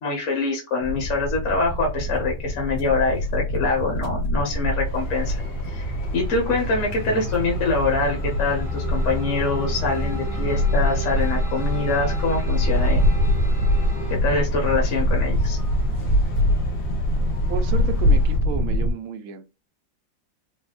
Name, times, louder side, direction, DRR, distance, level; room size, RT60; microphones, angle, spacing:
voice 1, 0.0-5.4 5.7-13.1 14.1-15.6, left 3 dB, 45° left, 1.1 m, -25 dB
sound 1, 0.8-18.9, equal, 60° left, 1.8 m, -24 dB
sound 2, 4.8-18.4, left 4 dB, 80° left, 1.7 m, -44 dB
sound 3, 5.6-14.2, right 4 dB, 20° right, 0.4 m, -39 dB
voice 2, 17.5-19.4, right 8 dB, 75° right, 0.8 m, -32 dB
4.3 x 2.2 x 2.3 m
omnidirectional pair, 2.0 m